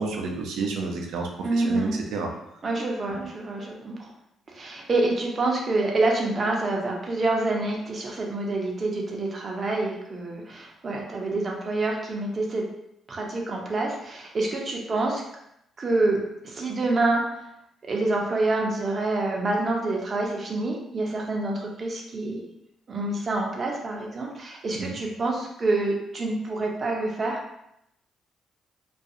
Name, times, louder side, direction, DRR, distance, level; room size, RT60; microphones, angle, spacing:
voice 1, 0.0-2.3 24.8-25.0, right 4 dB, 80° right, 2 dB, 0.5 m, -30 dB
voice 2, 1.4-2.0 2.6-4.1 4.5-12.7 13.1-15.2 15.8-17.2 17.8-22.4 22.9-27.4, right 2 dB, 40° right, 0 dB, 0.6 m, -27 dB
2.4 x 2.3 x 2.7 m, 0.80 s
cardioid pair, 90°, 0 cm